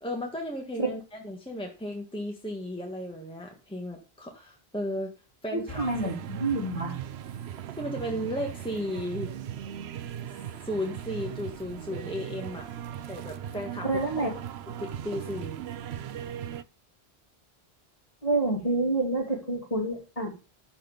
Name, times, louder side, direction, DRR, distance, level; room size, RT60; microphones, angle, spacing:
voice 1, 0.0-5.1 5.4-5.8 7.7-9.3 10.6-12.6 13.1-13.9 14.8-15.7, left 1 dB, 5° left, 1 dB, 1.4 m, -34 dB
sound 1, 5.7-16.6, right 10 dB, 80° right, 0.9 m, -38 dB
voice 2, 5.8-7.0 13.8-14.3 18.2-20.3, right 2 dB, 35° left, 0 dB, 2.7 m, -28 dB
12.0 x 4.4 x 5.1 m, 0.32 s
omnidirectional pair, 1.1 m